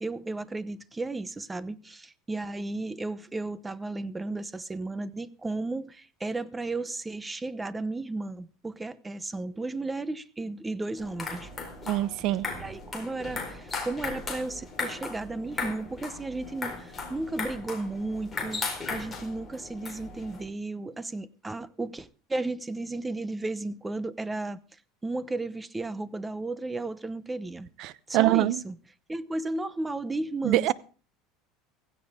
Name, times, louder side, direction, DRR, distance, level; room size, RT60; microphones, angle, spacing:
voice 1, 0.0-11.5 12.6-24.6 25.0-27.7 28.1-28.8 29.1-30.7, right 2 dB, 10° right, 0.8 m, -34 dB
sound 1, 11.0-20.4, left 3 dB, 10° left, 4.5 m, -37 dB
voice 2, 11.9-12.4 27.8-28.6 30.4-30.7, right 16 dB, 50° right, 0.8 m, -24 dB
16.0 x 16.0 x 3.6 m
cardioid pair, 155°, 0 cm